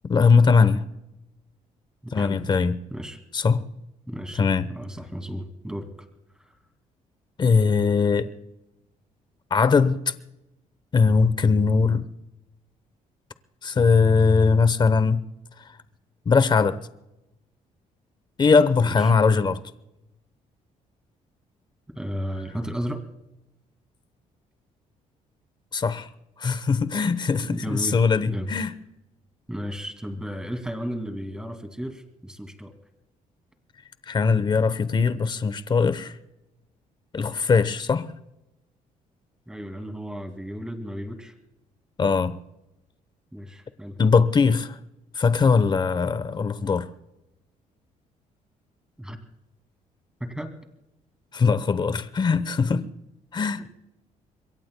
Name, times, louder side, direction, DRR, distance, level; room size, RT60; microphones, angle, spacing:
voice 1, 0.0-0.9 2.1-2.8 3.3-3.6 4.4-4.7 7.4-8.3 9.5-10.1 10.9-12.1 13.6-15.2 16.3-16.8 18.4-19.6 25.7-26.1 26.4-28.7 34.1-36.1 37.1-38.1 42.0-42.4 44.0-44.8 45.2-46.9 51.3-52.9 53.3-53.6, left 5 dB, 30° left, 0.9 m, -20 dB
voice 2, 2.0-2.4 2.9-3.2 4.1-4.4 4.7-5.9 18.8-19.1 22.0-23.0 27.5-28.0 28.3-28.6 29.5-32.7 39.5-41.3 43.3-44.0 49.0-49.2 50.2-50.5, equal, 5° right, 2.5 m, -34 dB
27.0 x 22.5 x 2.3 m
cardioid pair, 110°, 14 cm